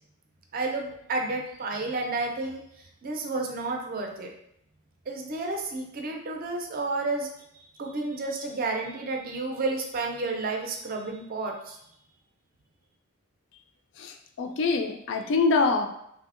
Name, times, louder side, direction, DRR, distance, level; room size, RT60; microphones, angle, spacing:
voice 1, 0.5-4.3 5.1-7.3 7.8-11.8, right 3 dB, 40° right, 1 dB, 0.4 m, -31 dB
voice 2, 14.4-15.9, left 4 dB, 55° left, 5 dB, 0.3 m, -24 dB
3.3 x 2.6 x 2.4 m, 0.76 s
head